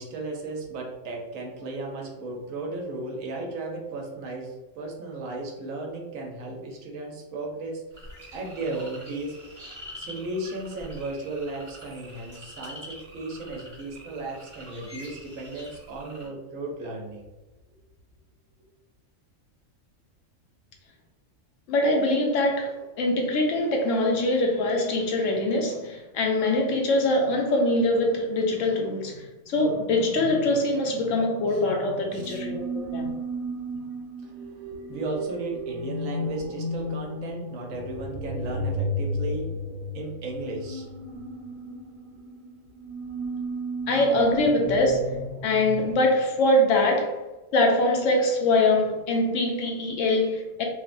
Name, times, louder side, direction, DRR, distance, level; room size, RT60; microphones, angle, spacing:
voice 1, 0.0-7.8 8.3-9.6 10.0-17.3 31.5-31.6 32.1-32.4 34.2-34.3 34.9-39.5 39.9-40.9, right 2 dB, 90° right, 0 dB, 1.1 m, -35 dB
sound 1, 7.9-16.3, equal, 25° right, 1.1 m, -45 dB
voice 2, 21.7-33.1 43.9-45.1 45.4-47.2 47.5-50.6, left 1 dB, 75° left, 1 dB, 0.9 m, -23 dB
sound 2, 32.2-45.9, equal, 50° right, 1.0 m, -34 dB
3.0 x 2.1 x 2.5 m, 1.1 s
omnidirectional pair, 1.4 m